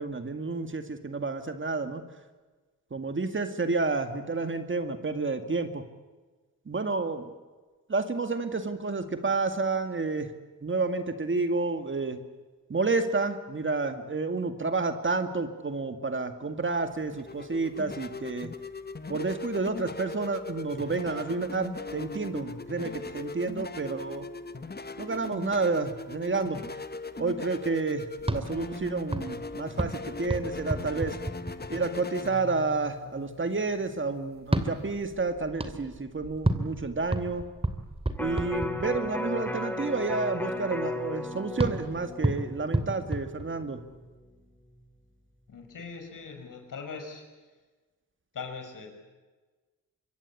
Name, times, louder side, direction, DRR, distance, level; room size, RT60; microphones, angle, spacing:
voice 1, 0.0-2.0 2.9-5.8 6.7-7.3 7.9-10.3 10.6-12.2 12.7-18.5 19.1-24.3 25.0-26.6 27.2-31.2 31.7-37.4 38.2-43.8, right 3 dB, 35° right, 8 dB, 2.0 m, -30 dB
sound 1, 16.8-35.0, left 3 dB, 30° left, 1.5 m, -40 dB
sound 2, 28.2-32.0 34.4-39.3 41.6-44.0, right 1 dB, 15° right, 2.8 m, -32 dB
Electric guitar, 38.2-44.4 44.8-44.9, left 1 dB, 5° left, 2.6 m, -36 dB
voice 2, 45.5-47.2 48.3-48.9, left 5 dB, 70° left, 5 dB, 5.9 m, -40 dB
25.5 x 22.0 x 8.4 m, 1.3 s
cardioid pair, 75°, 33 cm